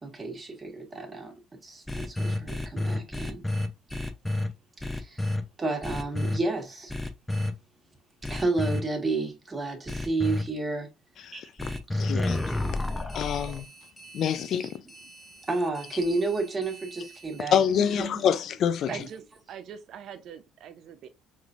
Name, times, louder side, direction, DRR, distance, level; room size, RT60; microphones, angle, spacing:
voice 1, 0.0-1.3 1.6-3.4 5.0-5.2 5.6-6.9 8.2-10.9 11.3-11.4 11.9-12.1 15.5-18.3 18.9-19.0, right 3 dB, 25° right, 1.5 m, -31 dB
sound 1, 1.9-4.5 4.8-5.4 5.8-6.4 6.9-7.5 8.2-8.8 9.9-10.4 11.6-17.4, left 1 dB, 10° left, 0.6 m, -31 dB
voice 2, 12.0-12.7 13.0-13.7 14.1-14.7 17.5-18.9, left 8 dB, 60° left, 0.3 m, -26 dB
voice 3, 18.9-19.2 19.5-21.1, right 8 dB, 65° right, 0.6 m, -42 dB
4.8 x 3.2 x 2.5 m
supercardioid pair, 85°, 0 cm